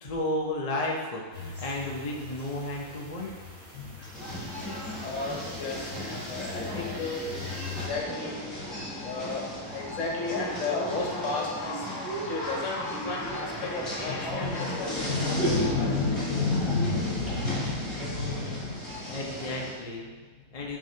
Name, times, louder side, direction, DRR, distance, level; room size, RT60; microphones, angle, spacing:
voice 1, 0.0-3.3 19.1-20.1 20.5-20.8, left 1 dB, 35° left, -2 dB, 0.6 m, -33 dB
sound 1, 1.3-7.9, left 5 dB, 40° right, 1.5 m, -43 dB
voice 2, 3.7-19.2 20.1-20.5, left 3 dB, 60° left, -1 dB, 1.2 m, -32 dB
sound 2, 4.1-19.7, equal, 20° left, 1.8 m, -36 dB
9.1 x 3.7 x 2.8 m, 1.4 s
omnidirectional pair, 1.5 m